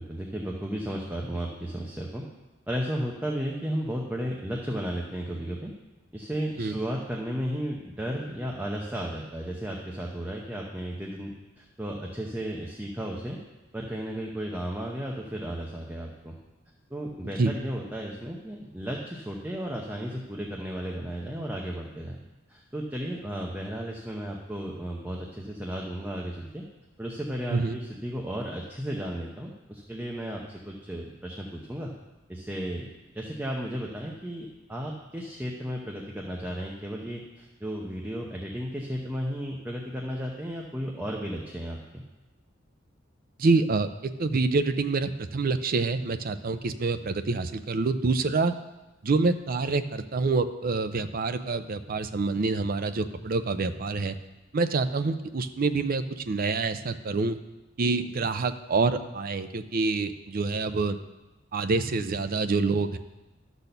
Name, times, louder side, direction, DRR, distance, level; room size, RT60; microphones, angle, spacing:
voice 1, 0.0-2.2 2.7-5.7 6.1-13.4 13.7-16.3 16.9-22.2 22.5-26.6 27.0-31.9 32.3-32.9 33.1-42.0, equal, 10° right, -1 dB, 0.8 m, -34 dB
voice 2, 43.4-48.5 49.0-54.2 54.5-57.4 57.8-61.0 61.5-63.0, right 3 dB, 45° right, 10 dB, 0.5 m, -26 dB
12.0 x 4.2 x 6.7 m, 1.1 s
head